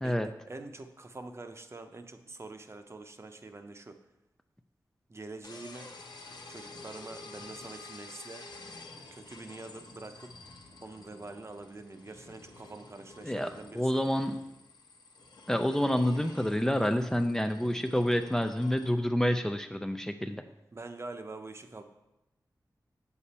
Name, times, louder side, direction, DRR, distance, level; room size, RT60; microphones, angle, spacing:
voice 1, 0.0-4.0 5.1-5.9 6.5-8.5 9.1-10.3 10.8-14.1 20.7-21.8, right 3 dB, 40° right, 7 dB, 0.8 m, -45 dB
sound 1, 5.4-18.9, left 3 dB, 85° left, 1.1 m, -50 dB
voice 2, 13.7-14.4 15.5-20.4, equal, 5° left, 7 dB, 0.4 m, -28 dB
8.4 x 6.9 x 4.3 m, 0.93 s
wide cardioid pair, 85°, 7 cm